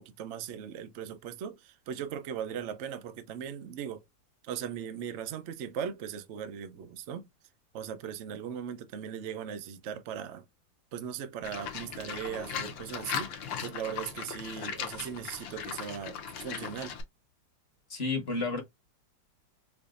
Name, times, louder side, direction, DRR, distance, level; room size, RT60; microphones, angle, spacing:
voice 1, 0.0-4.0 4.4-7.3 7.7-10.4 10.9-17.0, right 8 dB, 70° right, 0.6 m, -38 dB
Livestock farm animals working animals, 11.4-17.0, left 7 dB, 85° left, 1.5 m, -38 dB
voice 2, 17.9-18.6, left 3 dB, 40° left, 1.1 m, -31 dB
4.9 x 2.6 x 2.4 m
omnidirectional pair, 2.0 m